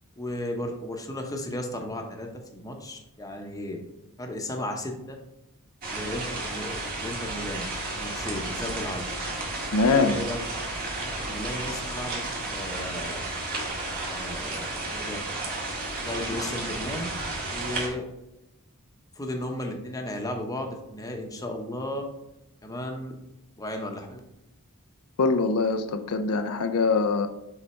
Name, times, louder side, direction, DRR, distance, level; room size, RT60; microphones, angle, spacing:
voice 1, 0.2-3.8 4.2-5.2 5.9-7.7 7.9-9.0 9.9-10.4 11.0-13.3 14.1-15.2 16.0-17.1 17.5-18.0 19.1-22.0 22.6-23.1 23.6-24.2, left 1 dB, 15° left, 2 dB, 0.9 m, -35 dB
sound 1, 5.8-17.9, right 2 dB, 40° right, 1.8 m, -32 dB
voice 2, 9.7-10.2 25.2-27.3, left 3 dB, 80° left, 6 dB, 0.5 m, -23 dB
7.1 x 4.0 x 4.3 m, 0.87 s
head